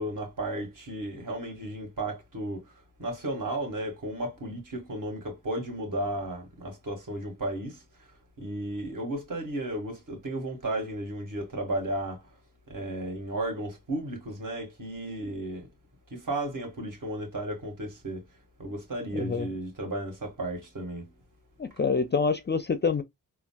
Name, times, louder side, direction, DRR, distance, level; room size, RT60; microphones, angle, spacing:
voice 1, 0.0-2.7 3.0-7.8 8.4-12.2 12.7-15.7 16.1-18.2 18.6-21.1, right 1 dB, 50° right, 1.9 m, -34 dB
voice 2, 19.1-19.5 21.6-23.0, left 5 dB, 25° left, 0.4 m, -26 dB
3.8 x 2.3 x 2.2 m
supercardioid pair, 50°, 41 cm